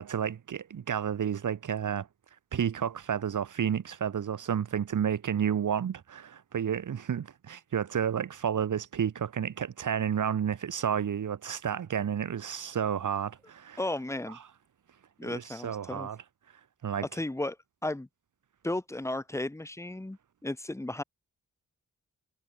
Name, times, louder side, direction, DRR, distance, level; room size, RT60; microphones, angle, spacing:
voice 1, 0.0-2.1 2.5-13.8 14.3-14.4 15.2-16.2 16.8-17.1, right 8 dB, 75° right, 1.8 m, -31 dB
voice 2, 13.8-14.4 15.2-16.1 17.1-17.6 17.8-18.1 18.6-21.0, left 1 dB, 10° left, 1.4 m, -34 dB
wide cardioid pair, 135°, 31 cm